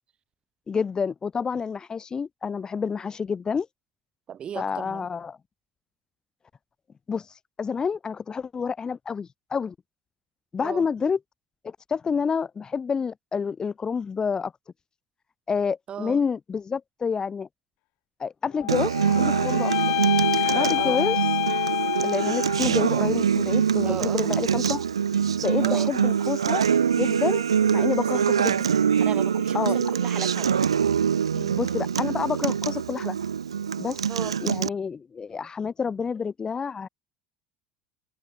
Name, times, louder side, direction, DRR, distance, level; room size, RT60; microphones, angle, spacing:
voice 1, 0.7-3.7 4.6-5.4 7.1-7.3 7.6-9.7 10.5-11.2 11.6-14.5 15.5-17.5 18.2-19.7 20.5-21.2 22.0-24.8 25.4-26.7 26.9-27.4 27.7-28.6 29.5-29.9 31.5-33.2 33.8-34.0 34.4-36.9, left 6 dB, 25° left, 0.8 m, -28 dB
voice 2, 4.3-5.1 10.6-10.9 15.9-16.2 20.8-21.0 23.8-24.4 25.6-25.9 28.0-28.2 29.0-30.6 31.3-31.6 34.1-34.4, right 9 dB, 35° right, 1.4 m, -35 dB
sound 1, 18.5-22.8, left 25 dB, 60° left, 1.2 m, -27 dB
Acoustic guitar, 18.7-34.7, right 7 dB, 85° right, 0.6 m, -24 dB
hypercardioid pair, 75°, 3 cm